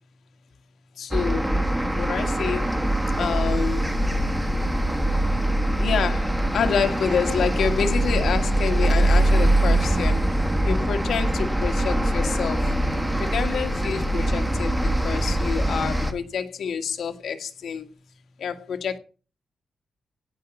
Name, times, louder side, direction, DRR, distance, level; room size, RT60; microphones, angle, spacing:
voice 1, 1.0-1.5 2.0-2.6 3.2-3.8 5.8-6.3 6.5-10.2 10.6-12.6 13.2-14.7 15.0-17.9 18.4-19.0, left 7 dB, 70° left, 1.8 m, -27 dB
sound 1, 1.1-16.1, right 1 dB, 5° right, 1.5 m, -23 dB
17.0 x 5.6 x 8.3 m
wide cardioid pair, 165°, 0 cm